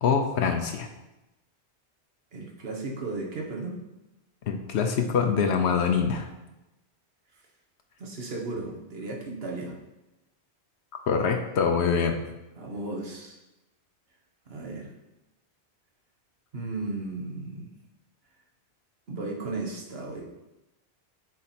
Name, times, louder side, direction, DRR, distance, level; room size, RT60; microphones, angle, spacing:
voice 1, 0.0-0.9 4.5-6.3 11.1-12.2, left 6 dB, 80° left, 4 dB, 0.9 m, -24 dB
voice 2, 2.3-3.8 8.0-9.8 12.6-13.4 14.5-14.9 16.5-17.7 19.1-20.3, right 2 dB, 65° right, 0 dB, 1.4 m, -35 dB
6.4 x 4.3 x 4.3 m, 0.98 s
omnidirectional pair, 1.1 m